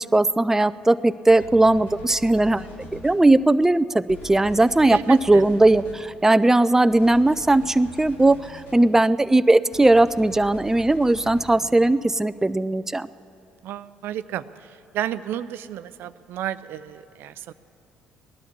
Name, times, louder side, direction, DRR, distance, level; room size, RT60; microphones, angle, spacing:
voice 1, 0.1-13.1, right 2 dB, 10° right, 14 dB, 0.5 m, -18 dB
sound 1, 1.3-3.2 4.1-6.0 6.9-8.8 9.7-11.6, equal, 70° left, 3.8 m, -43 dB
voice 2, 4.9-5.4 13.6-14.4 14.9-17.5, right 11 dB, 65° right, 14 dB, 0.5 m, -32 dB
18.5 x 11.5 x 6.9 m, 2.8 s
hypercardioid pair, 55°, 4 cm